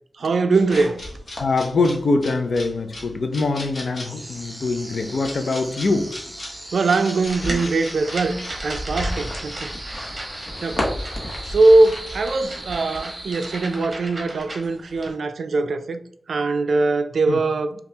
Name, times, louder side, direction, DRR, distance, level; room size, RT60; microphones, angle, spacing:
voice 1, 0.2-1.0 6.7-10.2 10.6-10.8 11.5-16.0 16.3-17.8, right 3 dB, 80° right, 0.3 m, -21 dB
sound 1, 0.5-12.4, left 1 dB, 45° left, 1.1 m, -34 dB
voice 2, 1.4-6.4 17.3-17.4, left 3 dB, 70° left, 0.5 m, -23 dB
sound 2, 4.0-14.2, right 1 dB, 15° right, 0.8 m, -39 dB
sound 3, 7.2-15.1, right 1 dB, 40° right, 1.0 m, -36 dB
5.3 x 2.3 x 2.8 m
wide cardioid pair, 120°, 0 cm